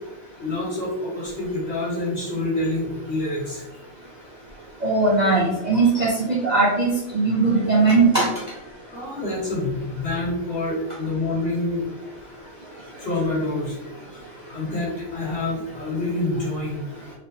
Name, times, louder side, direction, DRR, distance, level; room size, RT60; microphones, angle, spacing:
voice 1, 0.4-3.7 8.9-11.9 12.2-12.3 13.0-13.8 14.5-16.8, left 2 dB, 45° left, -7 dB, 1.9 m, -27 dB
voice 2, 4.8-6.1 6.4-6.9 7.1-8.3, right 3 dB, 40° right, -5 dB, 0.6 m, -18 dB
3.9 x 3.6 x 2.7 m, 0.99 s
omnidirectional pair, 1.5 m